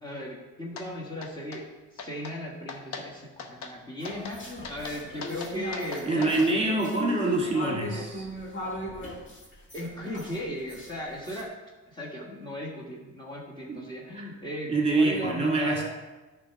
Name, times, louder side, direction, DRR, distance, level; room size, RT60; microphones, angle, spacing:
voice 1, 0.0-6.8 9.7-11.5 11.9-15.8, equal, 15° left, -4 dB, 1.4 m, -37 dB
sound 1, 0.8-0.9 1.2-1.6 2.0-2.4 2.7-3.1 3.4-3.7 4.0-4.4 4.6-6.5, left 5 dB, 65° left, 1.0 m, -39 dB
sound 2, 4.0-11.4, left 2 dB, 40° left, 2.1 m, -39 dB
voice 2, 6.1-8.3 13.7-13.8 14.1-14.3 14.7-15.8, right 2 dB, 20° right, -1 dB, 2.0 m, -25 dB
9.9 x 3.5 x 5.8 m, 1.2 s
cardioid pair, 90°, 30 cm